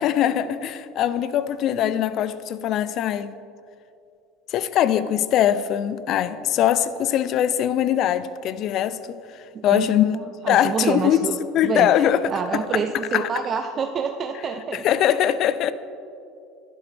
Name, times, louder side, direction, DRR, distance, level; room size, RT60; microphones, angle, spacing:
voice 1, 0.0-3.3 4.5-10.2 10.5-11.2 11.5-12.6 13.1-13.3 14.7-15.7, left 10 dB, 55° left, 0.4 m, -22 dB
voice 2, 9.5-11.4 11.6-11.9 12.3-14.8, right 6 dB, 40° right, 0.5 m, -27 dB
11.5 x 10.5 x 3.4 m
hypercardioid pair, 85°, 0 cm